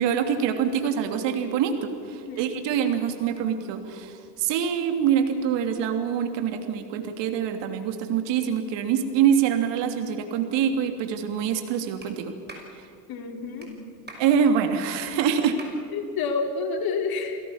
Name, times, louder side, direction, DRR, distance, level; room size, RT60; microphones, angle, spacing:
voice 1, 0.0-12.3 14.2-15.6, right 8 dB, 60° right, 7 dB, 3.1 m, -25 dB
voice 2, 2.1-2.5 13.1-13.9 15.9-17.4, left 4 dB, 45° left, 3 dB, 4.4 m, -29 dB
Clapping, 12.0-12.1 12.5-12.7 13.6-13.7 14.1-14.3 15.1-15.2 15.6-15.8, right 2 dB, 20° right, 5.8 m, -42 dB
28.5 x 17.0 x 7.3 m, 2.5 s
hypercardioid pair, 80°, 49 cm